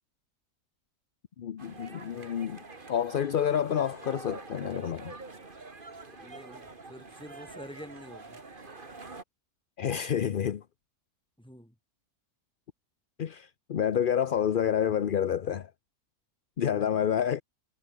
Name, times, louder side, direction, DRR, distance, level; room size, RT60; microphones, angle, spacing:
voice 1, 1.4-2.6 2.9-5.1 9.8-10.6 13.2-15.7 16.6-17.4, left 9 dB, 50° left, 0.6 m, -28 dB
sound 1, 1.6-9.2, right 3 dB, 35° right, 2.3 m, -46 dB
voice 2, 6.2-8.4 11.4-11.7, equal, 5° left, 7.2 m, -47 dB
omnidirectional pair, 1.6 m